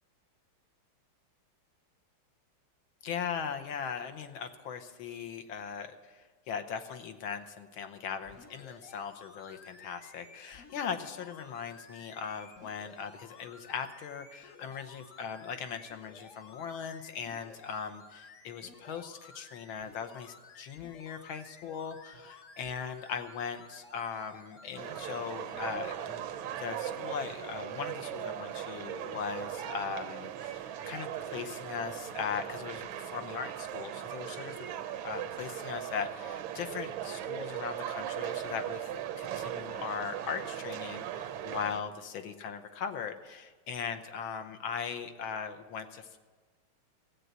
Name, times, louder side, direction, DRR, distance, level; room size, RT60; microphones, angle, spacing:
voice 1, 3.0-26.2 26.6-34.5 35.0-46.2, left 6 dB, 70° left, 7 dB, 1.6 m, -39 dB
sound 1, 8.2-26.1 26.7-26.8, left 4 dB, 50° left, 1.1 m, -54 dB
sound 2, 24.8-41.8, right 10 dB, 70° right, 1.4 m, -39 dB
15.0 x 8.1 x 8.0 m, 1.4 s
omnidirectional pair, 2.4 m